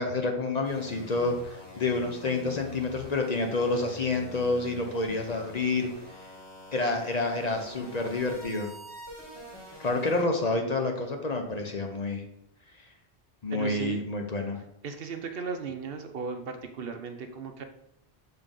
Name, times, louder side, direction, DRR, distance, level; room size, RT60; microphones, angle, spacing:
voice 1, 0.0-5.9 6.7-8.7 9.8-12.2 13.4-14.6, left 3 dB, 45° left, 3 dB, 0.7 m, -28 dB
sound 1, 0.6-10.2, left 1 dB, 90° left, 2.7 m, -46 dB
voice 2, 13.5-14.0 14.8-17.6, right 5 dB, 65° right, 6 dB, 0.8 m, -36 dB
7.0 x 3.7 x 3.7 m, 0.78 s
omnidirectional pair, 1.1 m